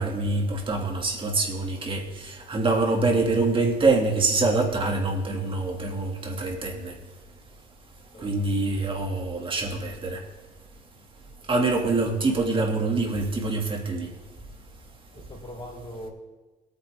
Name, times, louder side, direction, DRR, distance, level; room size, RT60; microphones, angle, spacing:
voice 1, 0.0-6.9 8.2-10.2 11.5-14.1, right 3 dB, 30° right, 2.8 m, -25 dB
voice 2, 8.1-8.6 11.4-11.7 15.1-16.1, equal, 30° left, 5.3 m, -42 dB
21.5 x 9.5 x 3.9 m
cardioid pair, 110°, 17 cm